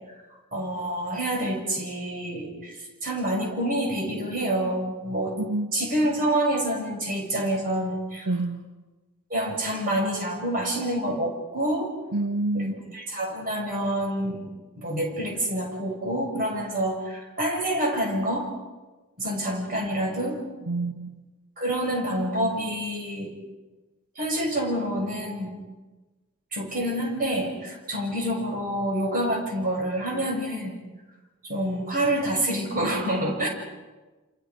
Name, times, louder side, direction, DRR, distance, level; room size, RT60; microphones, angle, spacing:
voice 1, 0.5-5.4 5.7-8.3 9.3-11.9 12.5-18.5 19.2-20.4 21.6-23.3 24.1-25.5 26.5-30.7 31.4-33.5, right 1 dB, 40° right, 1 dB, 6.5 m, -27 dB
voice 2, 5.4-5.7 8.3-8.6 12.1-12.7 20.7-21.2, right 2 dB, 80° right, 5 dB, 1.5 m, -27 dB
29.0 x 27.0 x 5.2 m, 1.2 s
head